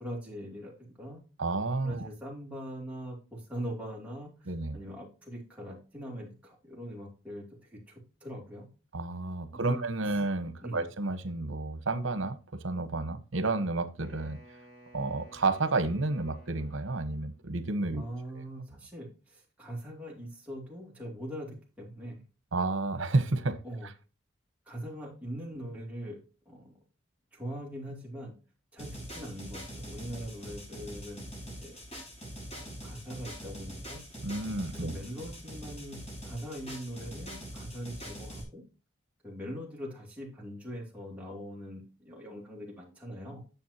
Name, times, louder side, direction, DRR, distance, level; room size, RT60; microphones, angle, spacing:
voice 1, 0.0-1.2 1.8-8.7 9.5-9.8 10.6-10.9 17.9-22.2 23.6-23.9 24.7-26.2 26.5-26.7 27.3-28.4 28.7-31.8 32.5-34.0 34.7-38.6 39.2-43.4, equal, 5° right, 2.6 m, -42 dB
voice 2, 1.4-2.1 4.5-4.8 8.9-14.4 14.9-18.0 22.5-23.6 34.2-34.9, right 2 dB, 80° right, 1.0 m, -31 dB
Wind instrument woodwind instrument, 14.0-17.5, right 1 dB, 45° left, 4.3 m, -56 dB
sound 1, 28.8-38.4, equal, 30° left, 4.1 m, -43 dB
9.3 x 6.9 x 2.8 m
head